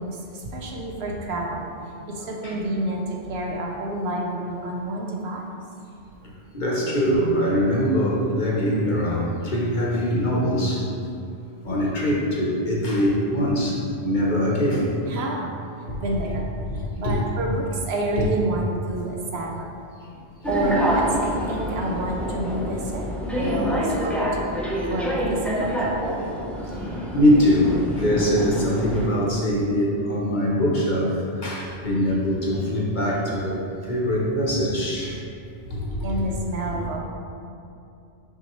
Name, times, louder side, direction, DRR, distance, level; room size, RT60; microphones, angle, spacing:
voice 1, 0.0-1.7 2.1-5.6 15.1-15.5 16.0-16.5 17.0-19.7 20.5-23.1 23.3-24.2 24.9-26.1 36.0-37.0, right 1 dB, 65° right, 0 dB, 0.9 m, -28 dB
voice 2, 6.2-10.9 11.6-14.9 15.9-16.0 16.7-17.2 18.2-18.3 24.6-24.7 26.6-35.2 35.7-36.2, equal, 45° left, -4 dB, 0.9 m, -23 dB
sound 1, 20.4-29.1, equal, ahead, 0.4 m, -27 dB
5.9 x 5.4 x 3.0 m, 2.6 s
omnidirectional pair, 1.2 m